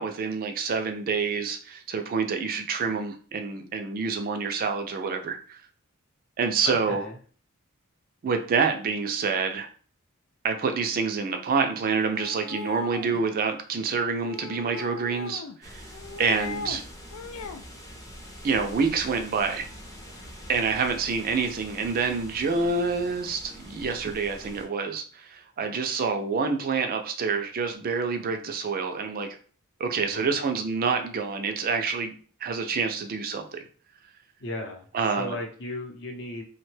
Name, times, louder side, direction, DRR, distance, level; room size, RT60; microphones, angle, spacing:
voice 1, 0.0-5.6 6.4-7.0 8.2-9.7 10.4-15.8 16.2-16.8 18.4-19.7 20.5-29.3 29.8-32.1 32.4-33.7 34.9-35.4, right 5 dB, 40° right, 6 dB, 0.4 m, -27 dB
voice 2, 6.6-7.2 16.5-16.8 30.0-30.6 34.4-34.9 35.2-36.4, left 1 dB, 55° left, 2 dB, 0.7 m, -36 dB
sound 1, 12.1-13.2 14.2-15.6 15.9-16.8 17.1-17.6, left 5 dB, 80° left, 0.4 m, -39 dB
sound 2, 15.6-24.7, equal, 15° left, 0.5 m, -44 dB
2.9 x 2.1 x 3.2 m, 0.42 s
head